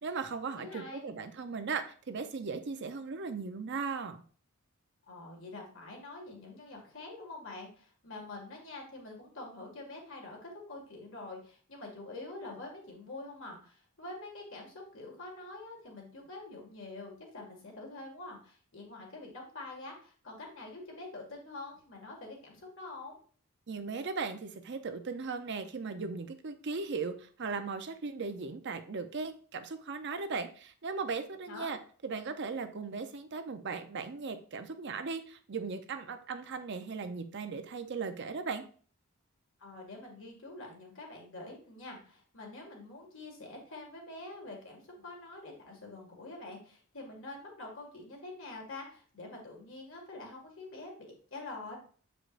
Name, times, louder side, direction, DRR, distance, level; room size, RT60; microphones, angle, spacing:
voice 1, 0.0-4.2 23.7-38.6, right 4 dB, 50° right, 8 dB, 0.6 m, -37 dB
voice 2, 0.5-1.1 5.0-23.2 31.5-31.7 39.6-51.8, left 2 dB, 60° left, 0 dB, 2.0 m, -46 dB
7.4 x 5.1 x 2.5 m, 0.43 s
head